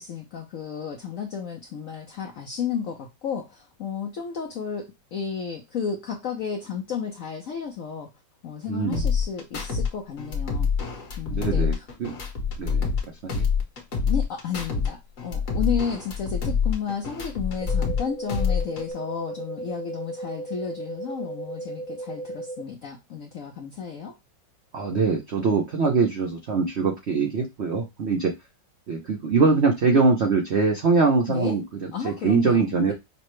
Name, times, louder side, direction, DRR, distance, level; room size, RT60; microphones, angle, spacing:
voice 1, 0.0-8.1 8.4-10.7 11.2-11.9 14.1-24.1 31.3-31.5 31.9-32.9, left 7 dB, 80° left, 2 dB, 0.7 m, -32 dB
voice 2, 8.7-9.0 11.3-11.7 12.0-12.1 12.6-12.9 13.2-13.5 24.7-28.3 28.9-32.9, right 4 dB, 85° right, 2 dB, 0.5 m, -23 dB
sound 1, 8.9-9.9 10.2-13.0 13.3-14.9 15.2-18.0 18.3-18.9, left 6 dB, 45° left, 1.3 m, -26 dB
sound 2, 17.6-22.6, right 2 dB, 30° right, 0.7 m, -36 dB
5.7 x 2.1 x 3.0 m, 0.21 s
omnidirectional pair, 2.2 m